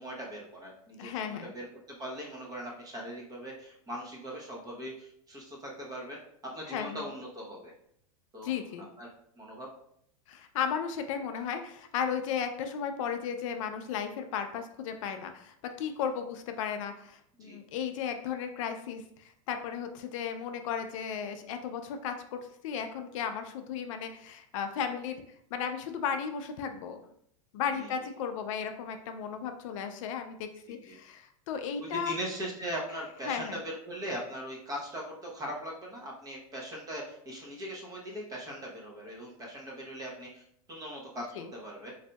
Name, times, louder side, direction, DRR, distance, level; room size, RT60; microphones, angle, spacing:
voice 1, 0.0-7.7 8.3-8.5 9.0-9.1 9.4-9.7 17.4-17.6 27.8-27.9 30.7-31.0 31.8-40.4 40.7-41.9, equal, 20° right, -2 dB, 0.9 m, -40 dB
voice 2, 1.0-1.5 6.7-7.1 8.4-8.9 10.3-25.2 25.5-27.0 27.5-32.1 33.3-33.6 41.4-41.5, left 7 dB, 60° left, 7 dB, 0.4 m, -35 dB
4.0 x 2.6 x 2.2 m, 0.70 s
supercardioid pair, 130°, 18 cm